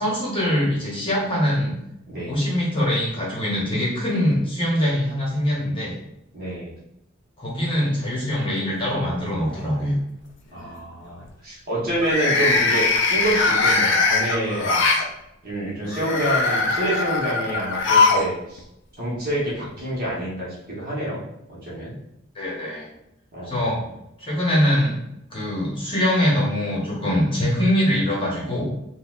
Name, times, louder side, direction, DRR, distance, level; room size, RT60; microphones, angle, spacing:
voice 1, 0.0-1.8 2.2-6.0 7.4-9.9 22.3-22.9 23.4-23.8 24.2-24.9 25.3-28.7, equal, 25° left, -6 dB, 1.0 m, -23 dB
voice 2, 6.3-6.7 10.5-14.9 15.4-18.6 19.0-21.9 23.3-23.8, right 1 dB, 45° right, -7 dB, 1.1 m, -27 dB
sound 1, 8.4-9.1 9.5-9.8 11.9-15.0 15.9-18.3 18.6-18.7 19.8-19.9, left 3 dB, 60° left, 0.4 m, -21 dB
3.8 x 2.2 x 2.4 m, 0.82 s
head